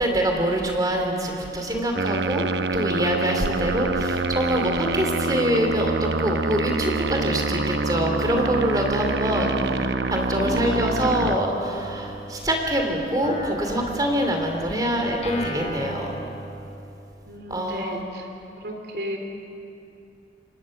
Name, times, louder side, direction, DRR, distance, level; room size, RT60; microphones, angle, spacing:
voice 1, 0.0-9.5 10.1-16.1 17.5-18.0, equal, 20° right, 2 dB, 3.3 m, -25 dB
sound 1, 1.9-11.4, right 3 dB, 80° right, 0.8 m, -26 dB
voice 2, 9.0-9.9 10.4-11.3 17.2-18.3 18.6-19.2, right 1 dB, 65° right, 3 dB, 3.6 m, -33 dB
Guitar, 11.2-12.7 13.2-17.1, equal, 40° left, 4.8 m, -37 dB
28.5 x 24.0 x 6.7 m, 2.7 s
head